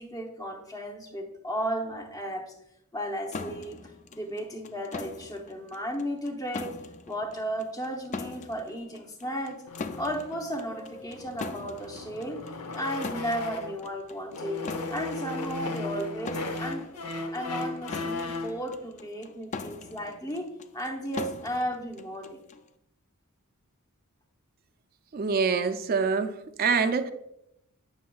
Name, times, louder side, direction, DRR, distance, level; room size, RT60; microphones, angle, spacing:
voice 1, 0.0-2.5 2.9-9.6 10.0-12.4 12.7-14.6 14.9-16.9 17.3-22.4, equal, 15° left, 3 dB, 0.9 m, -34 dB
sound 1, 3.3-22.7, left 4 dB, 30° left, 0.3 m, -42 dB
sound 2, 9.7-13.9 14.3-18.6, left 2 dB, 85° left, 0.8 m, -36 dB
voice 2, 25.1-26.3 26.6-27.1, right 5 dB, 40° right, 8 dB, 0.4 m, -25 dB
9.2 x 6.0 x 2.3 m, 0.81 s
head